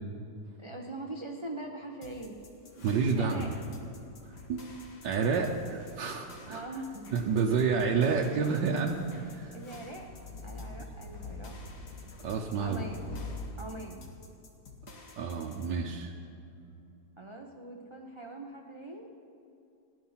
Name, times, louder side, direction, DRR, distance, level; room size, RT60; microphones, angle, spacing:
voice 1, 0.6-2.4 3.2-3.5 6.5-7.1 9.5-10.1 10.4-11.6 12.6-13.1 13.6-14.0 17.2-19.1, right 2 dB, 30° right, 1 dB, 0.5 m, -42 dB
sound 1, 2.0-15.7, left 4 dB, 70° left, 2.1 m, -53 dB
sound 2, 2.8-13.5, left 3 dB, 55° left, 1.6 m, -47 dB
voice 2, 2.8-3.5 3.8-3.9 4.2-6.6 7.1-9.6 12.2-12.8 15.2-16.1, right 5 dB, 85° right, 0 dB, 1.5 m, -30 dB
16.0 x 11.0 x 5.7 m, 2.7 s
omnidirectional pair, 1.9 m